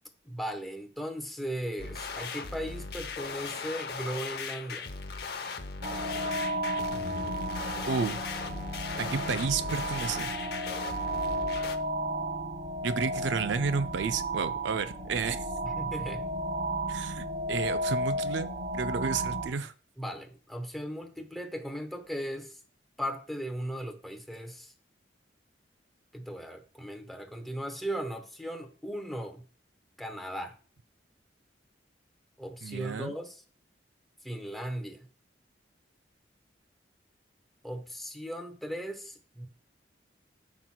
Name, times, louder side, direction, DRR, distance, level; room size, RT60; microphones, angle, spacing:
voice 1, 0.2-4.9 15.6-16.3 20.0-22.6 23.0-24.7 26.1-29.5 30.0-30.6 32.4-33.4 34.2-35.1 37.6-39.5, equal, ahead, 0.9 m, -37 dB
sound 1, 1.8-11.8, left 5 dB, 55° left, 0.8 m, -38 dB
sound 2, 5.8-19.5, right 1 dB, 40° right, 1.6 m, -33 dB
voice 2, 7.9-8.2 9.0-10.3 12.8-15.5 16.9-18.5 18.7-19.7 32.6-33.1, right 5 dB, 80° right, 0.4 m, -31 dB
13.0 x 6.0 x 2.2 m
head